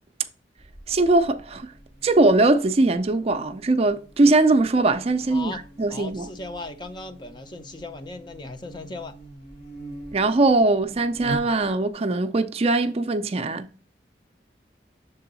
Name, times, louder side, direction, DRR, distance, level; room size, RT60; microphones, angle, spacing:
Buzz, 0.6-12.0, right 2 dB, 80° left, 2.8 m, -43 dB
voice 1, 0.9-1.7 2.0-6.3 10.1-13.7, right 2 dB, 35° right, 0.4 m, -21 dB
voice 2, 5.3-5.6 5.9-9.2, left 3 dB, 25° left, 0.5 m, -37 dB
6.8 x 3.7 x 3.9 m
head